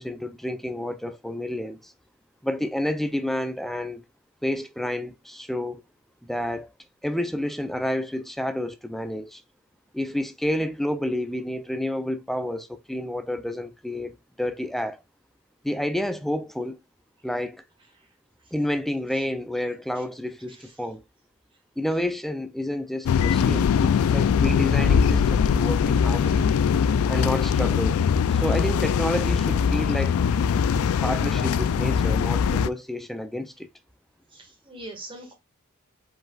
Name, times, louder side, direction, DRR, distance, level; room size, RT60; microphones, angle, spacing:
voice 1, 0.0-1.9 2.4-4.0 4.4-5.8 6.2-6.7 7.0-9.4 9.9-15.0 15.6-16.8 17.2-17.6 18.5-21.0 21.8-26.5 27.1-28.0 28.3-30.2 31.0-33.7, left 1 dB, ahead, 0.4 m, -29 dB
sound 1, 23.1-32.7, left 7 dB, 85° left, 0.3 m, -21 dB
voice 2, 26.1-27.0 34.3-35.3, right 1 dB, 25° right, 1.7 m, -43 dB
5.1 x 4.0 x 2.3 m
head